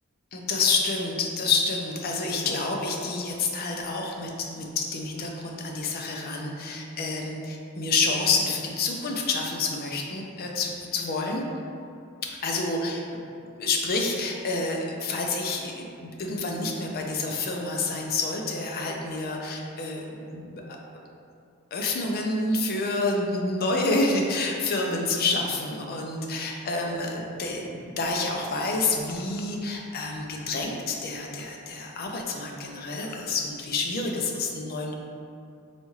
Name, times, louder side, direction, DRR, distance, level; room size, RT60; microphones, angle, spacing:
voice 1, 0.3-11.4 12.4-13.0 13.6-20.0 20.3-20.8 21.7-34.9, left 3 dB, 45° left, 1 dB, 0.4 m, -28 dB
4.1 x 2.3 x 3.0 m, 2.5 s
head